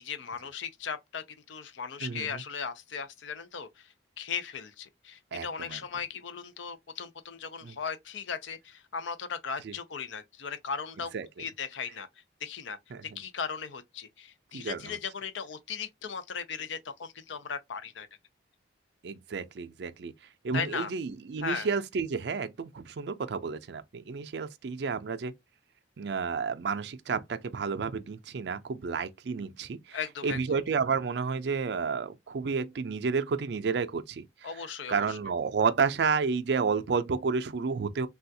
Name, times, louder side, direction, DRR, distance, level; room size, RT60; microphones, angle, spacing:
voice 1, 0.0-11.1 11.4-12.1 12.4-12.8 13.0-18.1 20.5-20.9 21.4-21.7 29.9-30.4 34.4-35.2, left 6 dB, 80° left, 0.5 m, -37 dB
voice 2, 2.0-2.4 5.3-5.8 7.6-7.7 9.6-9.7 11.1-11.3 12.9-13.2 14.5-15.0 19.0-20.1 20.4-25.3 26.0-34.5 34.9-38.1, right 5 dB, 60° right, 0.4 m, -31 dB
3.4 x 2.3 x 2.7 m
head